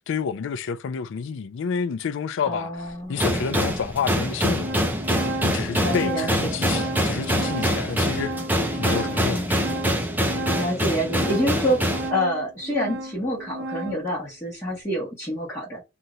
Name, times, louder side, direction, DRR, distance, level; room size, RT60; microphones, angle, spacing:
voice 1, 0.1-2.7 3.1-4.8 5.4-8.4 8.7-9.7 10.3-10.5, left 6 dB, 60° left, 0.4 m, -29 dB
voice 2, 2.5-3.2 5.8-6.6 9.3-9.6 10.6-15.8, equal, 15° left, 1.2 m, -27 dB
Organ, 2.9-3.0 3.8-3.9 4.2-14.1, right 1 dB, 70° right, 0.6 m, -33 dB
sound 1, 3.2-12.1, equal, 10° right, 0.6 m, -25 dB
2.7 x 2.5 x 3.0 m
head